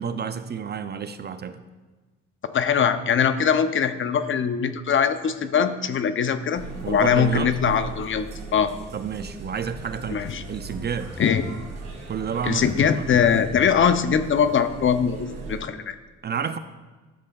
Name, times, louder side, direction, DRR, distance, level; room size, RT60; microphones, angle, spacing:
voice 1, 0.0-1.6 6.8-7.6 8.9-11.2 12.1-13.0 16.2-16.6, right 7 dB, 35° right, 11 dB, 0.4 m, -30 dB
voice 2, 2.5-8.3 8.5-8.7 10.1-10.4 11.2-11.4 12.4-15.9, left 7 dB, 40° left, 11 dB, 0.5 m, -22 dB
sound 1, 6.5-15.7, right 3 dB, 65° right, 2.5 m, -38 dB
11.5 x 6.7 x 2.3 m, 1.3 s
cardioid pair, 90°, 30 cm